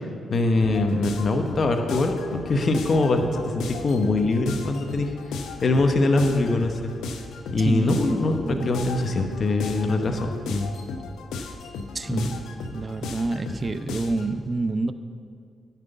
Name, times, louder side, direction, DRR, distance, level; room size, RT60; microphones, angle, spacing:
voice 1, 0.3-5.1 5.6-6.8 7.5-10.7 12.1-12.3, left 2 dB, 55° left, 5 dB, 1.0 m, -23 dB
sound 1, 0.6-14.3, left 4 dB, 80° left, 0.7 m, -36 dB
voice 2, 7.6-8.8 11.9-12.4 12.7-14.9, right 3 dB, 40° right, 11 dB, 0.5 m, -28 dB
10.5 x 5.9 x 7.0 m, 2.4 s
hypercardioid pair, 45°, 0 cm